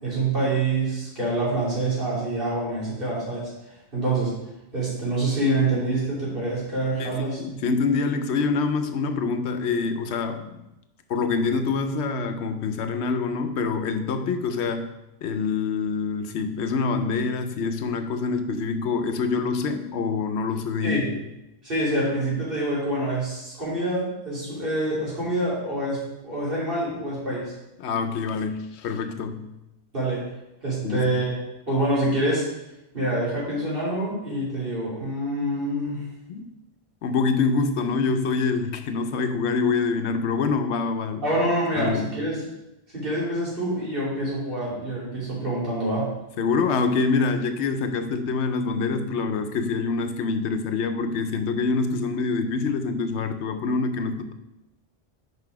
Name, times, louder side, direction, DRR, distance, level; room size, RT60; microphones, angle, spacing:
voice 1, 0.0-3.5 3.9-4.3 4.7-7.4 20.8-21.1 21.6-27.5 29.9-30.2 30.6-31.3 31.7-32.4 32.9-36.0 41.2-42.4 42.9-46.1, right 1 dB, 55° right, -8 dB, 3.2 m, -26 dB
voice 2, 7.0-10.6 11.1-14.9 15.2-21.2 27.8-29.5 30.8-31.1 36.3-36.5 37.0-41.3 41.8-42.1 46.4-54.3, left 4 dB, 85° left, 8 dB, 0.9 m, -25 dB
5.9 x 5.4 x 4.6 m, 0.94 s
omnidirectional pair, 1.1 m